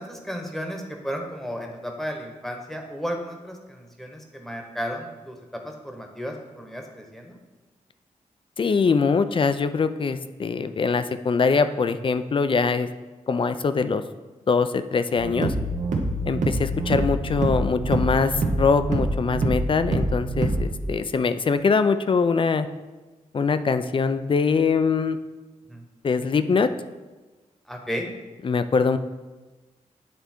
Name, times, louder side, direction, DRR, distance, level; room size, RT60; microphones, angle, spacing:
voice 1, 0.0-7.4 25.7-25.8 27.7-28.1, equal, ahead, 2 dB, 1.1 m, -34 dB
voice 2, 8.6-12.9 13.3-14.0 14.5-15.5 16.3-22.7 23.3-25.2 26.0-26.7 28.4-29.0, left 5 dB, 40° left, 11 dB, 0.4 m, -22 dB
sound 1, 15.2-20.8, right 2 dB, 70° right, 1.0 m, -26 dB
9.2 x 3.4 x 4.4 m, 1.2 s
cardioid pair, 75°, 13 cm